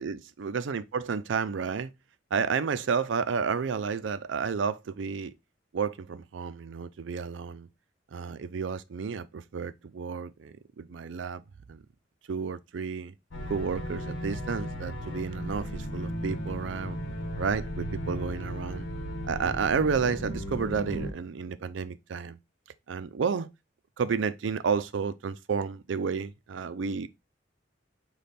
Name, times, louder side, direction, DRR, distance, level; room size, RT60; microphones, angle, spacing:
voice 1, 0.0-1.9 2.3-5.3 5.7-7.7 8.1-11.4 11.7-11.8 12.3-13.1 13.5-17.0 17.4-18.9 19.3-22.4 22.9-23.5 24.0-27.1, right 5 dB, 75° right, 0.4 m, -31 dB
sound 1, 13.3-21.1, equal, 85° left, 1.0 m, -35 dB
5.1 x 2.3 x 4.1 m
head